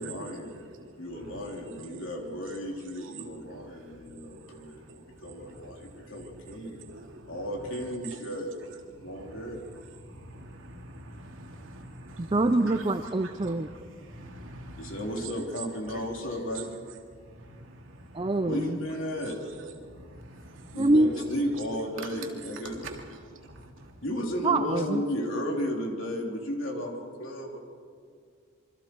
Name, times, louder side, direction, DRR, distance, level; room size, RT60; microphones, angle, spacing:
voice 1, 0.0-0.5 1.0-6.9 7.3-8.5 9.0-9.6 14.8-16.7 18.4-19.4 20.7-22.8 24.0-27.6, equal, 65° left, 1 dB, 3.3 m, -34 dB
voice 2, 4.1-4.4 4.9-5.1 5.4-7.3 9.1-9.4 10.1-12.4 12.7-12.8 13.2-13.5 14.0-15.0 15.9-16.0 17.6-18.3 19.6-19.7 20.1-20.8 22.0-22.1 22.7-23.0 23.4-23.9, right 2 dB, 65° right, 1 dB, 2.9 m, -45 dB
voice 3, 12.2-13.7 18.1-18.8 20.8-21.1 24.4-25.0, right 2 dB, 25° right, 9 dB, 0.5 m, -25 dB
26.5 x 24.5 x 4.6 m, 2.1 s
head